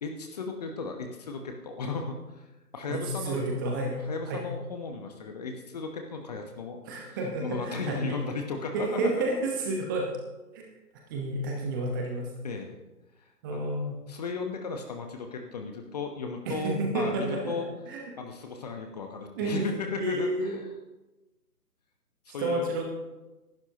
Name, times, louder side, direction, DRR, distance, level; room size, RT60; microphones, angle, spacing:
voice 1, 0.0-2.2 2.7-3.4 3.8-9.2 12.4-12.8 13.5-13.7 14.1-17.7 18.2-20.5 22.3-22.7, left 4 dB, 25° left, 4 dB, 1.1 m, -35 dB
voice 2, 2.9-4.4 6.9-8.2 8.7-10.1 10.5-10.6 11.1-12.3 13.4-14.0 16.5-17.6 17.9-18.0 19.4-19.7 20.0-20.5 22.3-22.9, right 2 dB, 15° right, 0 dB, 1.1 m, -30 dB
19.5 x 12.0 x 2.9 m, 1.1 s
figure-of-eight pair, 140°, 47 cm